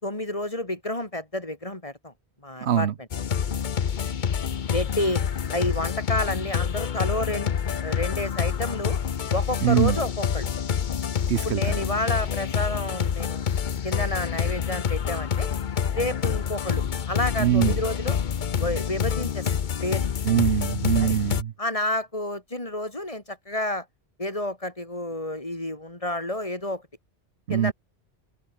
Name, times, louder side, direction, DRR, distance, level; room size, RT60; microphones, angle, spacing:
voice 1, 0.0-2.1 2.4-2.9 4.7-5.2 5.5-7.5 7.8-9.0 9.3-10.5 11.4-13.4 13.8-15.5 15.9-18.2 18.6-19.5 19.8-20.1 21.0-21.2 21.6-23.9 24.2-26.8 27.5-27.7, left 1 dB, 30° left, 3.5 m, -30 dB
voice 2, 2.6-2.9 9.6-10.0 11.3-11.8 17.4-17.8 20.2-21.5 27.5-27.7, right 9 dB, 80° right, 1.0 m, -23 dB
sound 1, 3.1-21.4, left 7 dB, 50° left, 0.9 m, -27 dB
open air
omnidirectional pair, 1.1 m